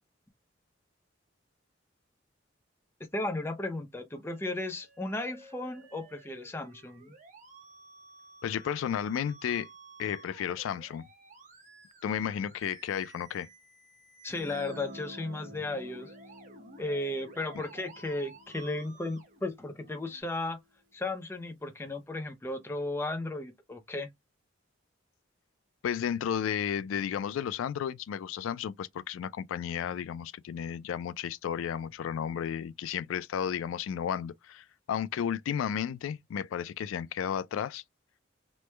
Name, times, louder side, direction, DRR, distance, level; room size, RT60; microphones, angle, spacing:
voice 1, 3.1-7.1 14.2-16.1 16.8-20.6 20.9-24.1, left 2 dB, 10° left, 0.4 m, -35 dB
Musical instrument, 4.3-20.2, right 3 dB, 40° right, 0.8 m, -54 dB
voice 2, 8.4-9.7 10.0-11.1 12.0-13.5 25.8-37.8, left 8 dB, 85° left, 0.3 m, -33 dB
Guitar, 14.3-20.1, equal, 80° right, 1.2 m, -50 dB
3.1 x 2.1 x 3.2 m
head